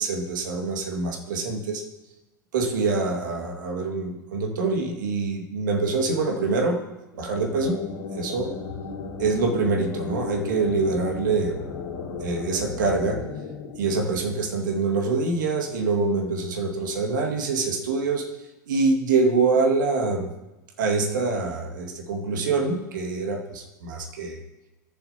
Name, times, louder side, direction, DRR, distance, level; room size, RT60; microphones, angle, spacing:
voice 1, 0.0-1.8 2.5-6.8 7.2-7.8 8.2-8.5 9.2-11.6 12.2-13.2 13.8-18.2 18.7-20.3 20.8-24.4, right 3 dB, 70° right, 1 dB, 2.0 m, -25 dB
sound 1, 7.1-14.8, left 5 dB, 75° left, 2.4 m, -35 dB
17.5 x 7.4 x 2.9 m, 1.0 s
figure-of-eight pair, 85°, 11 cm